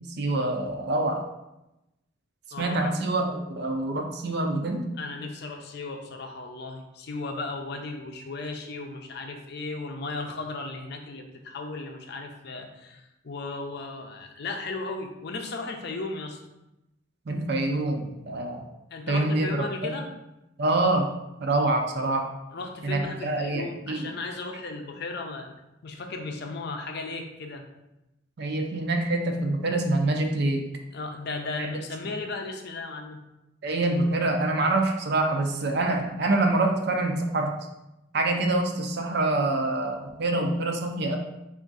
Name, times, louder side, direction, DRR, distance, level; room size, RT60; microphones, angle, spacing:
voice 1, 0.1-1.2 2.6-4.9 17.3-18.6 19.1-19.5 19.8-19.9 20.6-21.1 21.4-22.3 22.8-24.1 28.4-30.6 31.6-31.7 33.6-37.5 38.1-41.2, right 2 dB, 55° right, 3 dB, 0.5 m, -26 dB
voice 2, 2.5-2.9 5.0-16.4 18.9-20.1 22.5-25.5 25.8-27.7 30.9-33.2, left 3 dB, 55° left, 4 dB, 0.5 m, -35 dB
3.5 x 2.5 x 3.9 m, 0.92 s
head